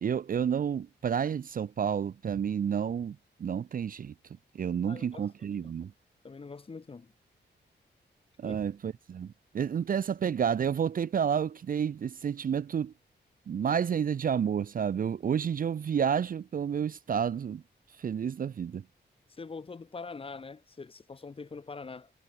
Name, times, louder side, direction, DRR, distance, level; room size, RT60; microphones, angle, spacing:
voice 1, 0.0-4.1 4.5-5.9 8.4-12.9 13.5-17.6 18.0-18.8, right 8 dB, 50° right, 0.6 m, -30 dB
voice 2, 4.8-5.7 6.2-7.1 8.4-8.6 19.3-22.1, left 4 dB, 30° left, 2.1 m, -44 dB
wide cardioid pair, 165°, 19 cm